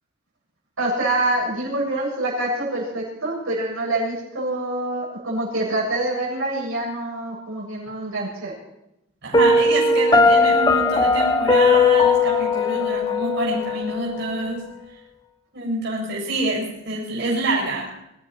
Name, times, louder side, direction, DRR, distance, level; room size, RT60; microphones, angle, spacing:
voice 1, 0.8-8.5, right 2 dB, 85° right, -4 dB, 7.8 m, -26 dB
voice 2, 9.2-14.6 15.5-18.0, right 2 dB, 55° right, -3 dB, 7.4 m, -26 dB
Piano, 9.3-14.3, left 3 dB, 20° left, 1.1 m, -18 dB
24.0 x 13.0 x 4.5 m, 0.86 s
head